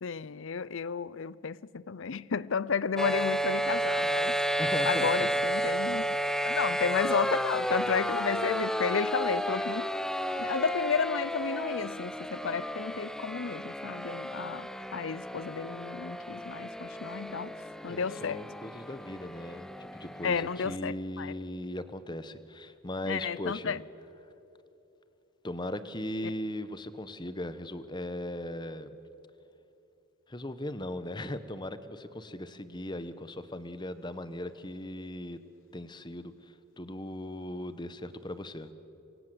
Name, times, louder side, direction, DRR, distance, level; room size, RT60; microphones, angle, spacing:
voice 1, 0.0-4.4 4.9-6.1 6.4-9.9 10.4-17.6 17.8-18.4 20.2-21.3 23.1-23.8, left 5 dB, 60° left, 0.5 m, -32 dB
sound 1, 3.0-20.8, equal, ahead, 0.7 m, -32 dB
voice 2, 4.6-5.4 17.9-23.8 25.4-28.9 30.3-35.4 35.7-38.7, left 1 dB, 20° left, 1.1 m, -38 dB
26.5 x 23.5 x 7.8 m
head